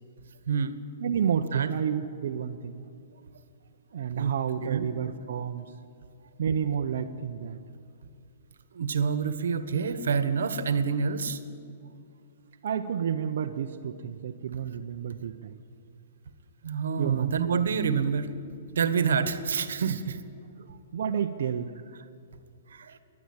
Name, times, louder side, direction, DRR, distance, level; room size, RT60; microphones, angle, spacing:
voice 1, 0.5-0.8 1.5-1.7 4.1-4.3 4.6-4.9 8.7-11.4 16.6-18.3 18.7-20.2 20.7-20.8 22.7-23.0, right 6 dB, 90° right, 12 dB, 1.4 m, -27 dB
voice 2, 1.0-2.9 3.9-5.7 6.4-7.6 12.6-15.6 17.0-17.3 20.9-21.7, right 8 dB, 65° right, 3 dB, 0.9 m, -30 dB
28.0 x 11.0 x 8.8 m, 2.5 s
hypercardioid pair, 165°, 0 cm